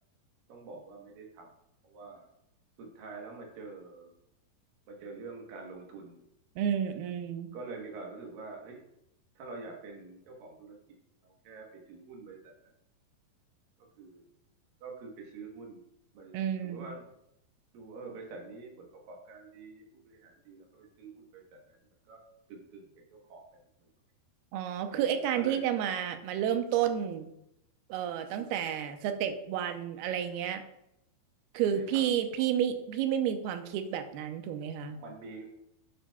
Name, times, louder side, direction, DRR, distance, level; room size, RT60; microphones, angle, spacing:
voice 1, 0.5-1.5 1.8-2.3 2.8-4.1 4.9-6.2 7.5-8.8 9.4-10.8 11.2-12.5 14.0-14.2 14.8-15.8 16.1-16.3 16.6-17.0 17.7-21.8 22.1-22.2 22.5-23.4 23.8-23.9 24.9-25.6 28.3-28.7 31.7-32.0 34.9-35.5, right 3 dB, 70° right, 0 dB, 2.7 m, -46 dB
voice 2, 6.6-7.5 16.3-16.9 24.5-27.3 27.9-30.6 31.5-35.0, right 9 dB, 90° right, 7 dB, 2.6 m, -31 dB
9.6 x 7.7 x 2.3 m, 0.80 s
omnidirectional pair, 4.5 m